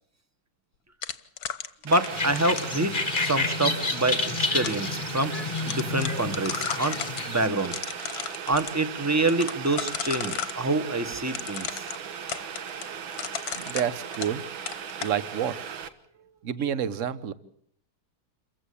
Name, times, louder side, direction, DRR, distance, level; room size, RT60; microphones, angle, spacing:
sound 1, 1.0-3.4 4.1-4.9 5.2-5.3 5.6-7.2 7.6-8.7 9.3-10.6 11.3-14.4 14.7-15.1, left 8 dB, 55° left, 1.4 m, -35 dB
voice 1, 1.8-5.3 5.6-7.0 7.3-7.8 8.5-11.8, right 2 dB, 10° right, 8 dB, 1.1 m, -26 dB
Boiling, 1.9-15.9, right 7 dB, 75° right, 2.1 m, -38 dB
sound 2, 2.1-7.5, left 4 dB, 30° left, 1.2 m, -30 dB
voice 2, 13.5-14.4 15.0-15.6 16.4-17.3, right 8 dB, 45° right, 15 dB, 1.2 m, -29 dB
28.0 x 15.5 x 8.5 m, 0.67 s
omnidirectional pair, 2.2 m